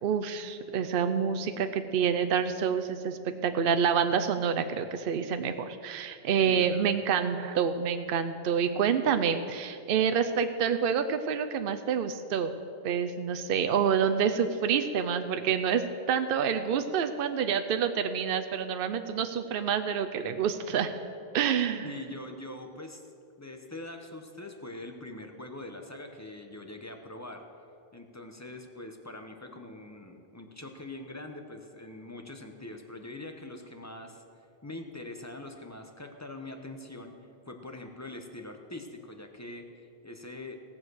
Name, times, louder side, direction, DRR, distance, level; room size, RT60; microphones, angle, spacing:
voice 1, 0.0-12.5 12.8-15.8 16.1-20.9 21.3-21.9, right 7 dB, 65° right, 8 dB, 0.8 m, -27 dB
voice 2, 6.4-7.0 21.8-23.0 23.4-27.4 27.9-34.2 34.6-40.5, left 2 dB, 15° left, 4 dB, 0.9 m, -43 dB
17.5 x 7.3 x 6.3 m, 2.5 s
omnidirectional pair, 1.1 m